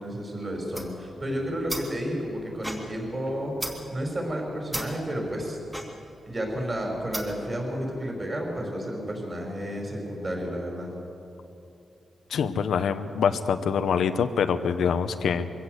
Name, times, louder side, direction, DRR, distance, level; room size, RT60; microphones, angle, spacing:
voice 1, 0.0-5.6 6.2-10.9, equal, 25° right, 0 dB, 5.5 m, -31 dB
sound 1, 0.7-7.5, equal, 10° right, 2.5 m, -39 dB
voice 2, 12.3-15.5, left 6 dB, 90° left, 9 dB, 1.0 m, -25 dB
23.0 x 16.5 x 8.1 m, 2.7 s
wide cardioid pair, 150°, 0 cm